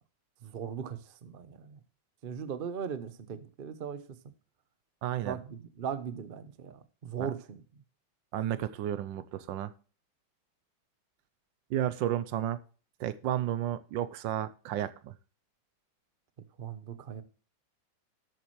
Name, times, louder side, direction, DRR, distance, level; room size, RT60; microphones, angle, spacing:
voice 1, 0.4-1.8 2.2-4.2 5.2-7.8 16.6-17.2, right 7 dB, 55° right, 0.5 m, -39 dB
voice 2, 5.0-5.4 7.2-7.3 8.3-9.7 11.7-12.6 13.0-15.2, right 12 dB, 75° right, 1.3 m, -32 dB
12.5 x 8.5 x 3.1 m
omnidirectional pair, 2.2 m